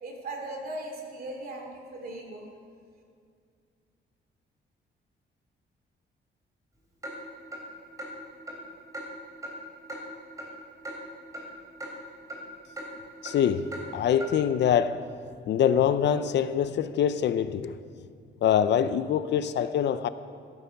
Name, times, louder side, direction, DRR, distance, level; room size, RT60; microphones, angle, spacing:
voice 1, 0.0-2.4, right 2 dB, 50° right, 2.8 m, -38 dB
Clock, 7.0-7.1 7.5-7.6 8.0-8.1 8.5-8.6 8.9-9.1 9.4-9.5 9.9-10.0 10.4-10.5 10.8-11.0 11.3-11.4 11.8-11.9 12.3-12.4 12.8-12.9 13.2-13.4 13.7-13.8 14.2-14.3, right 1 dB, 15° right, 3.2 m, -38 dB
voice 2, 13.2-15.0 15.5-17.8 18.4-20.1, left 9 dB, 65° left, 0.6 m, -24 dB
15.5 x 13.5 x 5.8 m
cardioid pair, 165°, 20 cm